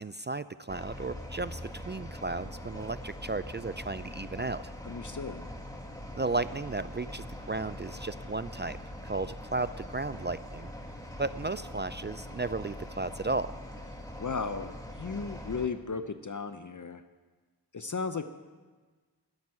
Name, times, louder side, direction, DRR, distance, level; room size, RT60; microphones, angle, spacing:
voice 1, 0.0-4.7 6.1-8.8 9.0-10.7 11.2-13.5, right 3 dB, 25° right, 14 dB, 0.4 m, -34 dB
sound 1, 0.7-15.7, left 1 dB, 10° left, 1.8 m, -43 dB
voice 2, 4.8-5.5 14.2-17.0 17.7-18.3, left 5 dB, 45° left, 9 dB, 0.7 m, -35 dB
13.5 x 7.2 x 9.7 m, 1.3 s
wide cardioid pair, 40°, 42 cm